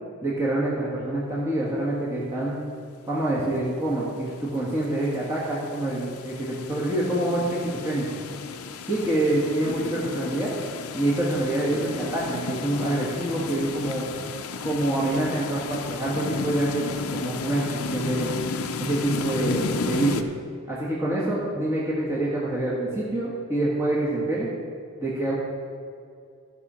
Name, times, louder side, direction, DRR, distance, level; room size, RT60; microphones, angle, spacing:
voice 1, 0.2-2.6 3.1-8.1 8.9-10.5 10.9-14.0 14.6-18.3 18.8-20.3 20.7-24.5 25.0-25.3, right 1 dB, 15° right, -7 dB, 1.6 m, -26 dB
sound 1, 4.2-20.2, left 4 dB, 80° left, 0.6 m, -33 dB
13.5 x 5.6 x 6.2 m, 2.3 s
head